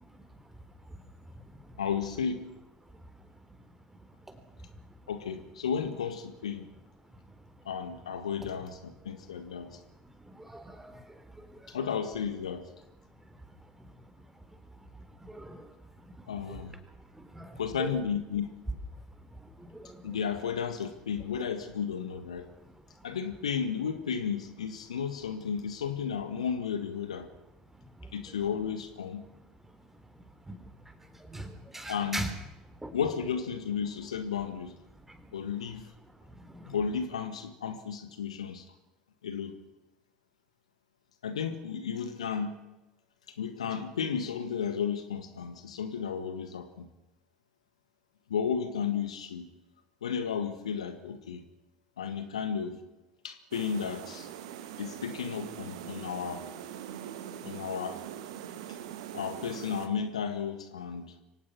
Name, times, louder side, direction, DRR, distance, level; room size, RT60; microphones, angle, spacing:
voice 1, 1.8-2.6 5.1-6.7 7.6-9.8 11.7-12.7 16.3-16.8 17.6-18.5 20.0-22.5 23.0-27.3 28.1-29.2 31.9-32.3 32.9-34.7 35.3-35.9 36.6-38.7 39.2-39.5 41.2-42.6 43.4-46.9 48.3-49.5 50.0-51.4 52.0-52.8 53.2-54.3 54.8-56.5 57.4-58.0 59.1-61.1, left 7 dB, 80° left, 10 dB, 1.7 m, -33 dB
voice 2, 10.3-11.0 11.5-11.7 15.3-15.7 16.4-16.6 17.2-17.9 19.7-20.0 31.2-32.3 32.8-32.9 35.1-35.2 36.3-36.7, right 1 dB, 10° right, 8 dB, 3.8 m, -40 dB
sound 1, 53.5-59.9, right 10 dB, 70° right, 1.8 m, -42 dB
24.0 x 18.0 x 6.1 m, 0.98 s
figure-of-eight pair, 65°, 3 cm